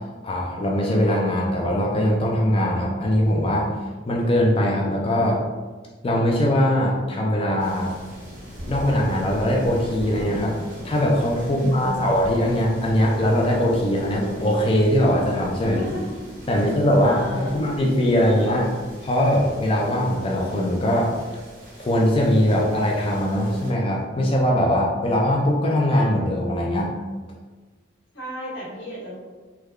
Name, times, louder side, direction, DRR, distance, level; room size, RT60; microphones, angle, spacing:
voice 1, 0.2-3.8 4.1-5.4 6.0-7.9 8.7-10.6 10.8-15.8 16.5-18.7 19.0-21.1 21.8-26.9, equal, 30° left, -2 dB, 0.4 m, -21 dB
sound 1, 7.6-23.7, equal, 45° right, 1.3 m, -39 dB
voice 2, 11.4-12.0 15.6-16.0 16.5-16.7 17.0-17.6 28.1-29.2, equal, 80° left, -7 dB, 1.4 m, -33 dB
3.6 x 2.2 x 3.2 m, 1.3 s
head